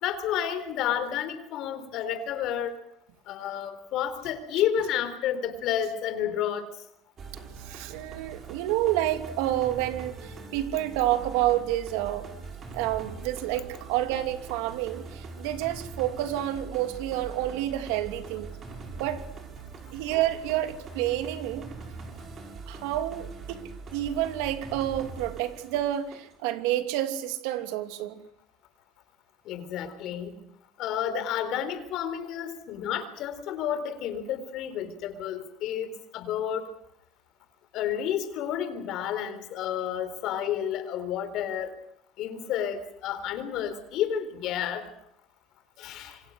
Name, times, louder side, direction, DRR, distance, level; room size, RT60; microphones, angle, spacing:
voice 1, 0.0-2.8 3.3-6.7 29.5-30.4 30.8-36.7 37.7-41.8 42.2-44.9 45.8-46.2, left 9 dB, 50° left, 4.0 m, -30 dB
sound 1, 7.2-26.4, right 4 dB, 30° right, 5.4 m, -42 dB
voice 2, 7.6-12.3 12.7-18.5 19.0-19.3 19.9-21.7 22.7-28.2, right 13 dB, 80° right, 2.9 m, -29 dB
27.0 x 25.0 x 6.5 m
cardioid pair, 155°, 0 cm